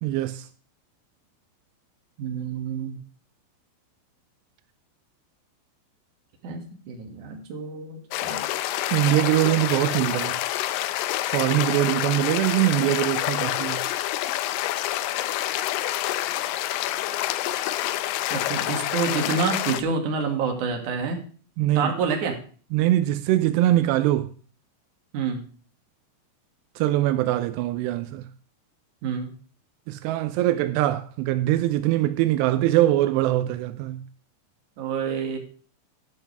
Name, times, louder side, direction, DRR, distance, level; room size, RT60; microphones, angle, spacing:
voice 1, 0.0-0.5 8.9-10.4 11.3-13.9 21.6-21.9 22.7-24.3 26.8-28.3 29.9-34.1, right 14 dB, 85° right, 2.4 m, -22 dB
voice 2, 2.2-3.0 6.4-8.4 18.3-21.2 21.7-22.4 25.1-25.4 29.0-29.3 34.8-35.4, right 5 dB, 50° right, 3.0 m, -28 dB
sound 1, 8.1-19.8, left 14 dB, 90° left, 2.3 m, -27 dB
12.0 x 12.0 x 3.4 m
omnidirectional pair, 5.5 m